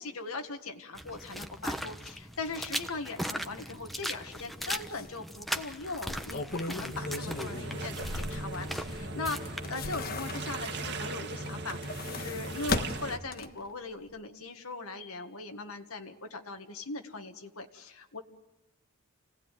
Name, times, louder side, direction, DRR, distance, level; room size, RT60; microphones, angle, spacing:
voice 1, 0.0-18.2, left 3 dB, 80° left, 5 dB, 1.9 m, -40 dB
sound 1, 0.9-10.9, equal, ahead, 1.2 m, -39 dB
sound 2, 4.4-4.5 4.9-5.0 6.0-9.0 9.4-10.8 11.6-13.7 14.1-14.2, left 2 dB, 45° left, 1.4 m, -37 dB
sound 3, 6.9-13.2, right 2 dB, 50° right, 2.0 m, -38 dB
28.5 x 18.0 x 9.3 m, 0.94 s
head